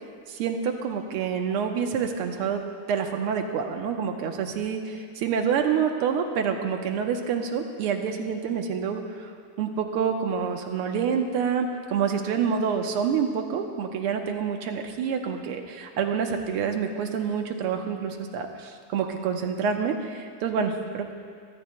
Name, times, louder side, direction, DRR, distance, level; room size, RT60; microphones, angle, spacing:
voice 1, 0.3-9.3 9.6-21.1, right 6 dB, 85° right, 4 dB, 1.8 m, -27 dB
24.5 x 13.0 x 2.2 m, 2.1 s
omnidirectional pair, 2.4 m